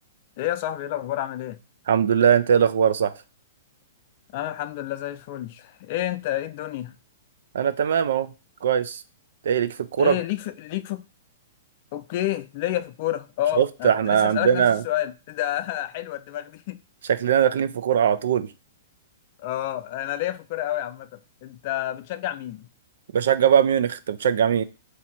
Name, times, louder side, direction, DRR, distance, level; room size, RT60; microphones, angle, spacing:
voice 1, 0.4-1.6 4.3-6.9 10.0-11.1 11.9-16.8 19.4-22.7, left 13 dB, 50° left, 0.4 m, -29 dB
voice 2, 1.9-3.1 7.5-8.3 8.6-9.0 9.4-10.1 13.6-14.8 17.1-18.5 23.1-24.6, right 8 dB, 70° right, 0.3 m, -20 dB
3.1 x 2.7 x 4.1 m
hypercardioid pair, 125°, 0 cm